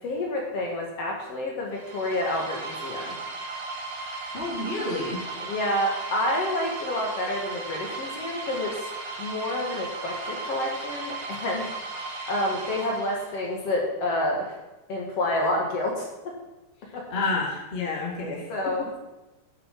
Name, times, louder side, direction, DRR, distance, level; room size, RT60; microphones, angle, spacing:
voice 1, 0.0-3.2 5.4-8.8 9.2-11.9 12.3-14.5 14.9-16.3 16.9-17.0 18.5-19.0, left 1 dB, 55° left, -1 dB, 2.8 m, -29 dB
sound 1, 1.7-13.6, right 3 dB, 75° right, 3.6 m, -36 dB
voice 2, 4.3-5.2 17.1-18.5, left 3 dB, 20° left, -2 dB, 2.1 m, -29 dB
9.6 x 7.7 x 7.5 m, 1.1 s
omnidirectional pair, 3.4 m